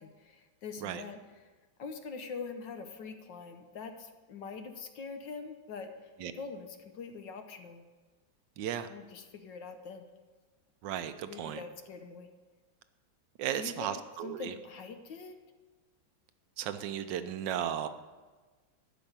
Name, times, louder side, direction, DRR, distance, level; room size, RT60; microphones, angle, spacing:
voice 1, 0.0-1.5 1.8-7.8 8.9-10.0 11.3-12.3 13.5-15.4, left 4 dB, 65° left, 7 dB, 1.5 m, -44 dB
voice 2, 8.6-8.9 10.8-11.6 13.4-14.5 16.6-17.9, right 10 dB, 70° right, 11 dB, 1.3 m, -35 dB
12.0 x 5.2 x 8.8 m, 1.3 s
omnidirectional pair, 2.2 m